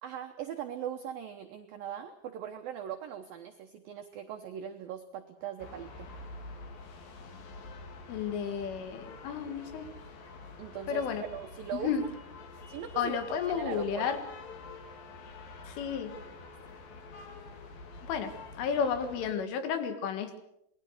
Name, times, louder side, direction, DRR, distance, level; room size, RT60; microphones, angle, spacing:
voice 1, 0.0-6.1 10.6-11.9 12.7-13.1 13.5-14.1, right 9 dB, 80° right, 5 dB, 2.1 m, -40 dB
sound 1, 5.6-19.4, left 3 dB, 55° left, 3.5 m, -47 dB
voice 2, 8.1-9.9 10.9-11.2 11.7-12.0 13.0-14.2 15.7-16.1 16.6-16.7 18.1-20.4, left 7 dB, 75° left, 8 dB, 4.4 m, -32 dB
26.5 x 20.0 x 6.4 m, 0.78 s
omnidirectional pair, 5.7 m